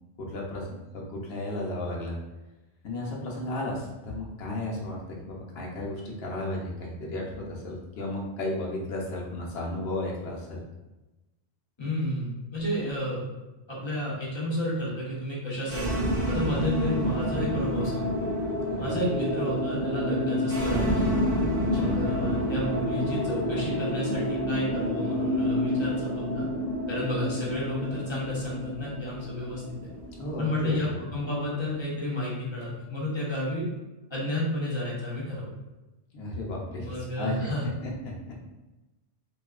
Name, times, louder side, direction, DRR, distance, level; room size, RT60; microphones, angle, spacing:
voice 1, 0.3-2.2 2.8-10.6 18.7-19.0 21.6-22.0 30.2-31.0 36.1-37.5 37.8-38.3, left 1 dB, 70° left, -2 dB, 0.9 m, -34 dB
voice 2, 11.8-13.2 13.7-15.9 16.3-18.1 18.8-21.1 21.7-26.5 26.9-29.9 30.4-33.7 34.1-35.5 36.7-37.6, left 1 dB, 30° left, -5 dB, 0.6 m, -31 dB
sound 1, 15.6-31.7, equal, 20° right, 0.8 m, -29 dB
2.7 x 2.3 x 2.3 m, 1.0 s
omnidirectional pair, 1.1 m